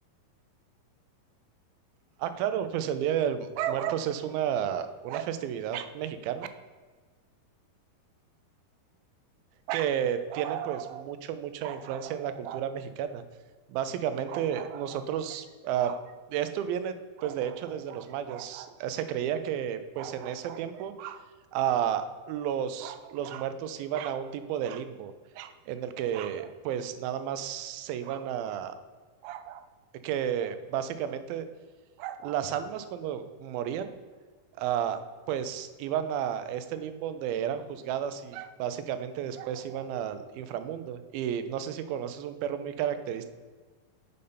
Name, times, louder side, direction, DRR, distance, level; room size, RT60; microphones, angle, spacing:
voice 1, 2.2-6.5 9.7-13.2 13.7-21.2 21.5-28.8 29.2-29.7 30.0-31.5 32.0-33.9 34.6-35.0 35.3-43.3, right 9 dB, 85° right, 10 dB, 2.4 m, -32 dB
6.8 x 5.3 x 5.5 m, 1.4 s
omnidirectional pair, 4.2 m